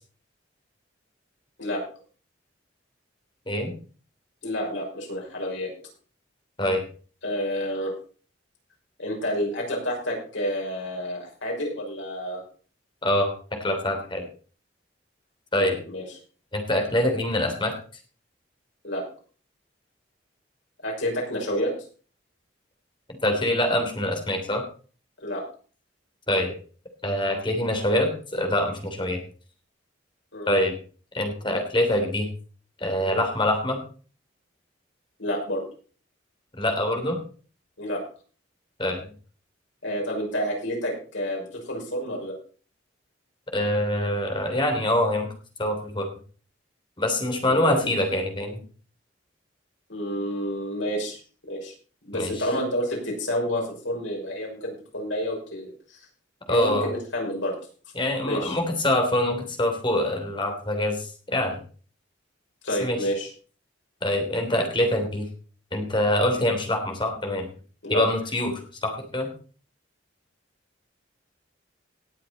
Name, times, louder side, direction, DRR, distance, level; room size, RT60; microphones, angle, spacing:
voice 1, 4.4-5.7 7.2-7.9 9.0-12.4 15.5-16.2 18.8-19.0 20.8-21.7 25.2-25.4 30.3-30.5 35.2-35.6 37.8-38.0 39.8-42.3 47.5-47.6 49.9-51.2 51.5-51.7 52.0-56.0 56.5-57.6 58.2-58.6 62.6-63.3 67.8-68.1, equal, 80° left, -1 dB, 6.0 m, -29 dB
voice 2, 13.6-14.2 15.5-15.8 16.5-17.7 23.2-24.6 26.3-26.5 27.0-29.2 30.5-30.7 31.1-32.3 32.8-33.8 36.6-37.2 38.8-39.0 43.5-45.3 45.6-46.1 47.0-48.6 52.1-52.3 56.5-56.9 57.9-61.6 62.8-63.0 64.0-65.3 65.7-67.5 67.9-69.3, left 1 dB, 25° left, 3 dB, 3.3 m, -24 dB
18.5 x 7.6 x 4.2 m, 0.39 s
head